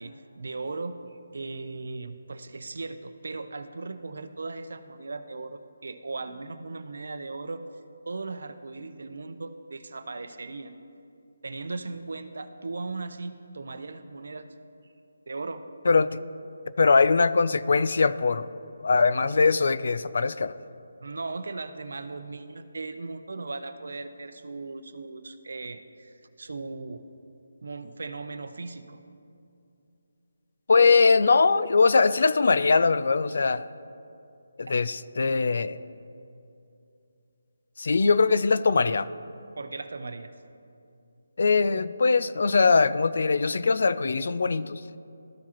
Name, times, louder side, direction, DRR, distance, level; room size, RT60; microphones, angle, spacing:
voice 1, 0.0-7.6 8.1-10.8 11.4-14.5 15.3-15.6 21.0-27.0 27.6-29.0 34.7-34.8 39.6-40.3, right 3 dB, 70° right, 10 dB, 0.6 m, -37 dB
voice 2, 15.9-16.2 16.8-18.5 18.8-20.6 30.7-33.7 34.6-35.8 37.8-39.1 41.4-44.8, left 4 dB, 65° left, 15 dB, 0.3 m, -21 dB
13.5 x 4.7 x 2.9 m, 2.7 s
figure-of-eight pair, 165°, 0 cm